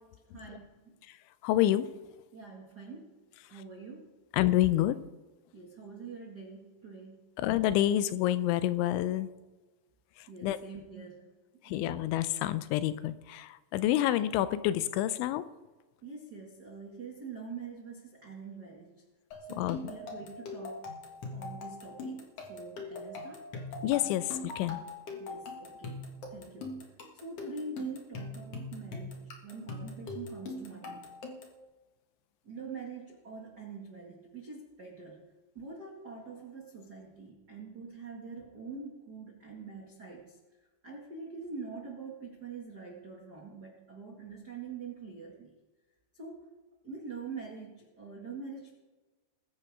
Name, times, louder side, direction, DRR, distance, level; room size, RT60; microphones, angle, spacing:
voice 1, 0.3-1.0 2.3-3.2 3.5-4.2 5.5-7.3 10.3-11.3 11.6-11.8 16.0-19.0 19.5-20.9 21.3-23.4 25.2-26.9 27.1-31.1 32.4-35.2 35.5-40.3 40.8-45.5 46.1-46.5 46.8-48.8, right 4 dB, 75° right, -2 dB, 0.9 m, -45 dB
voice 2, 1.4-1.9 3.5-3.6 4.3-5.0 7.4-9.3 10.2-10.6 11.6-15.5 19.6-19.8 23.8-24.8, left 13 dB, 85° left, 14 dB, 2.9 m, -28 dB
sound 1, 19.3-31.6, left 3 dB, 60° left, 1.7 m, -42 dB
22.0 x 9.8 x 3.6 m, 1.2 s
omnidirectional pair, 5.5 m